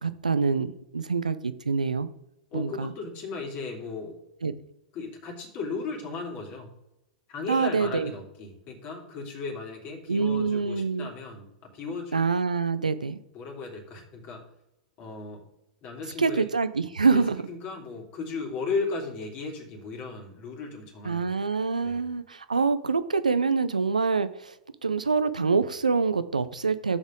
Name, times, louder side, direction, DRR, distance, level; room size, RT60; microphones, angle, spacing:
voice 1, 0.0-2.1 2.5-2.9 4.4-4.5 7.5-8.1 10.1-11.1 12.1-13.2 16.2-17.4 21.0-24.5 24.8-27.0, right 4 dB, 85° right, 13 dB, 0.6 m, -25 dB
voice 2, 2.5-4.2 4.9-6.7 7.3-12.2 13.3-14.4 15.0-15.4 15.8-16.5 17.1-17.2 17.5-21.3 21.8-22.1, left 4 dB, 40° left, 1 dB, 3.0 m, -36 dB
9.6 x 7.2 x 3.8 m, 0.89 s
figure-of-eight pair, 100°, 4 cm